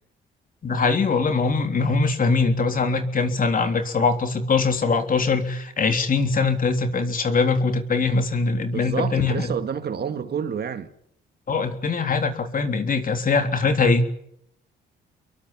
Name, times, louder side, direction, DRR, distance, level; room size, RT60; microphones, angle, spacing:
voice 1, 0.6-9.5 11.5-14.0, left 4 dB, 45° left, 3.5 m, -22 dB
voice 2, 8.7-10.9, right 7 dB, 55° right, 2.1 m, -28 dB
24.5 x 22.5 x 7.3 m
cardioid pair, 90°, 20 cm